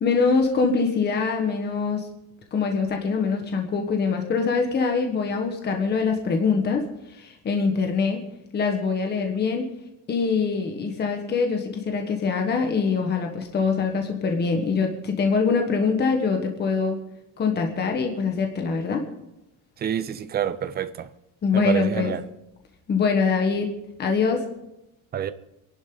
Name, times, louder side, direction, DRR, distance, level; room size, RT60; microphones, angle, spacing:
voice 1, 0.0-2.1 2.5-6.8 7.2-8.2 8.5-9.7 10.1-17.0 17.4-19.1 21.4-22.1 22.9-23.7 24.0-24.4, left 5 dB, 25° left, 1.5 m, -23 dB
voice 2, 19.8-21.1 21.5-22.2 25.1-25.3, right 9 dB, 25° right, 0.6 m, -27 dB
28.5 x 11.5 x 4.0 m
cardioid pair, 180°, 41 cm